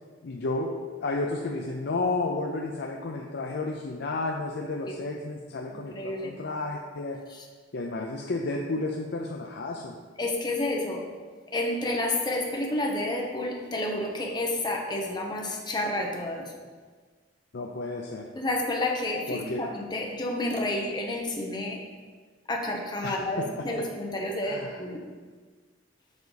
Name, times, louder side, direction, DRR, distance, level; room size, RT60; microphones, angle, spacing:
voice 1, 0.2-7.2 7.7-9.9 17.5-18.3 19.3-19.7 23.0-23.7 24.4-24.8, left 2 dB, 60° left, 1 dB, 0.5 m, -32 dB
voice 2, 5.7-6.3 7.3-7.4 10.2-11.1 11.5-16.5 18.4-21.8 22.5-25.0, left 1 dB, 25° left, 0 dB, 0.9 m, -30 dB
7.0 x 5.3 x 4.1 m, 1.5 s
head